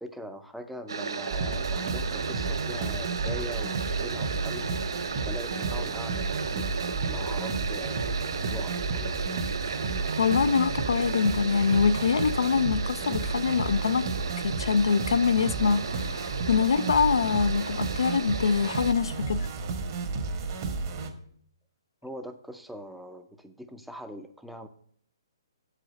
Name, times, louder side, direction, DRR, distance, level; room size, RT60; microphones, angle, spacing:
voice 1, 0.0-4.7 5.2-8.1 8.5-9.4 22.0-24.7, equal, ahead, 0.5 m, -42 dB
sound 1, 0.9-18.9, right 5 dB, 75° right, 0.6 m, -35 dB
sound 2, 1.3-21.1, right 4 dB, 45° right, 1.3 m, -32 dB
voice 2, 10.2-14.1 14.4-19.5, left 5 dB, 75° left, 0.4 m, -24 dB
7.1 x 4.9 x 6.4 m
hypercardioid pair, 140°, 2 cm